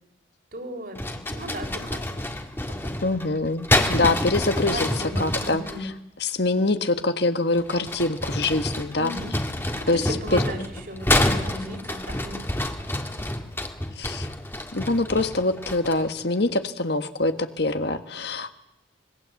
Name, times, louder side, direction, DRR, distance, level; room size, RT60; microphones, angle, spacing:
voice 1, 0.5-1.0 1.3-2.0 2.7-3.1 4.5-5.9 9.0-9.4 9.7-12.5, equal, 45° right, 5 dB, 3.8 m, -36 dB
sound 1, 0.9-5.8 7.5-16.1, left 1 dB, 10° left, 1.9 m, -28 dB
voice 2, 3.0-5.9 6.2-9.1 9.9-10.4 14.0-14.3 14.7-18.5, left 2 dB, 55° left, 9 dB, 1.5 m, -24 dB
26.0 x 21.5 x 8.3 m, 0.89 s
head